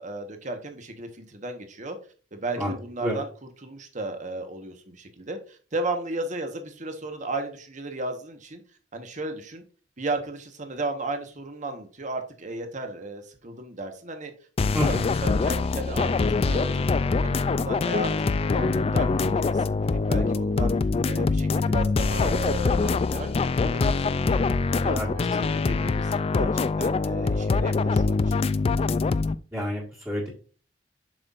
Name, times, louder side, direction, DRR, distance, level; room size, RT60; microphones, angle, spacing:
voice 1, 0.0-2.0 2.3-8.6 8.9-9.6 10.0-14.3 14.6-16.8 17.2-18.1 18.5-20.7 21.0-24.4 24.7-28.3, right 2 dB, 45° right, 6 dB, 1.3 m, -34 dB
sound 1, 14.6-29.3, left 4 dB, 35° left, 0.3 m, -24 dB
voice 2, 14.7-15.2 24.9-25.1 25.4-25.5 29.5-30.3, left 1 dB, 15° right, -5 dB, 1.7 m, -29 dB
7.6 x 5.8 x 2.5 m, 0.39 s
head